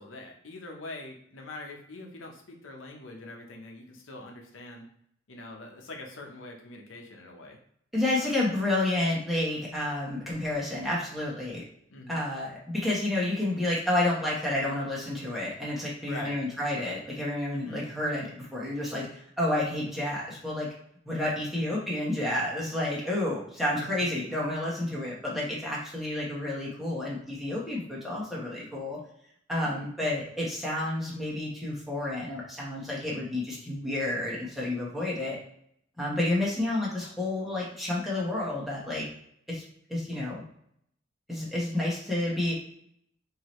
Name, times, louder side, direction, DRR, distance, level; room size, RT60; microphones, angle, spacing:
voice 1, 0.0-4.9 5.3-7.6 11.9-12.2 16.0-16.4 17.5-17.8 23.8-23.9 29.6-29.9, left 2 dB, 90° left, 1 dB, 0.8 m, -43 dB
voice 2, 7.9-11.6 12.1-20.7 21.0-29.0 29.5-35.4 36.0-39.0 39.5-39.6 39.9-40.4 41.3-42.5, left 1 dB, ahead, -6 dB, 1.1 m, -30 dB
4.6 x 2.8 x 3.1 m, 0.68 s
head